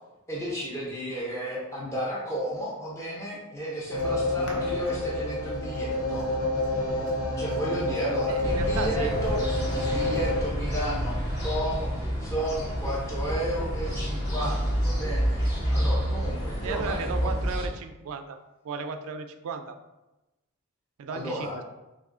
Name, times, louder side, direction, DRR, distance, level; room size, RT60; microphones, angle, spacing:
voice 1, 0.3-6.3 7.4-9.4 9.7-11.9 12.2-17.3 21.1-21.6, equal, 15° left, -5 dB, 0.6 m, -33 dB
sound 1, 3.9-10.4, left 2 dB, 80° left, 0.7 m, -28 dB
voice 2, 8.3-9.1 16.6-18.4 18.6-19.8 21.0-21.6, right 5 dB, 80° right, 7 dB, 0.3 m, -35 dB
sound 2, 8.4-17.7, equal, 45° left, 1.3 m, -29 dB
3.0 x 2.4 x 3.6 m, 0.99 s
head